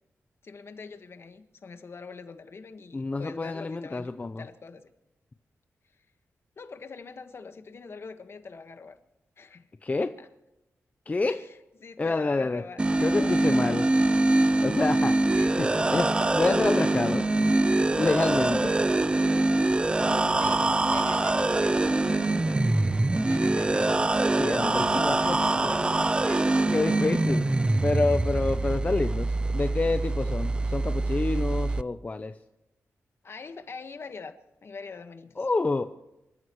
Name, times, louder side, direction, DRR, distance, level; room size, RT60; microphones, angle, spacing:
voice 1, 0.4-4.9 6.6-9.0 9.4-9.7 10.2-10.3 11.3-11.5 11.8-13.9 15.3-15.6 20.0-23.9 24.8-26.7 33.2-35.4, left 4 dB, 50° left, 7 dB, 1.6 m, -44 dB
voice 2, 2.9-4.4 9.8-10.1 11.1-11.4 12.0-12.6 13.0-13.9 14.6-15.1 15.6-17.2 17.9-18.7 24.4-25.7 26.7-27.4 27.8-32.3 35.4-35.9, left 3 dB, 30° left, 8 dB, 0.7 m, -28 dB
sound 1, 12.8-31.8, right 2 dB, 20° right, 0.5 m, -24 dB
26.5 x 14.0 x 3.2 m, 0.94 s
wide cardioid pair, 105°, 5 cm